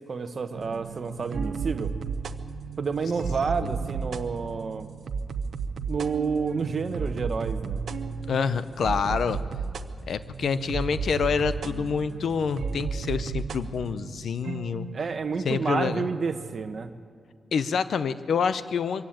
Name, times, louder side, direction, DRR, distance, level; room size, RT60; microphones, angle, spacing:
voice 1, 0.1-1.9 2.8-4.9 5.9-7.8 14.9-16.9, right 5 dB, 40° right, 8 dB, 1.0 m, -29 dB
sound 1, 0.5-16.8, right 5 dB, 60° right, 0.7 m, -34 dB
voice 2, 8.3-9.4 10.1-14.9 15.4-16.1 17.5-19.1, left 6 dB, 65° left, 13 dB, 0.6 m, -27 dB
23.5 x 15.5 x 8.7 m, 2.2 s
wide cardioid pair, 160°, 0 cm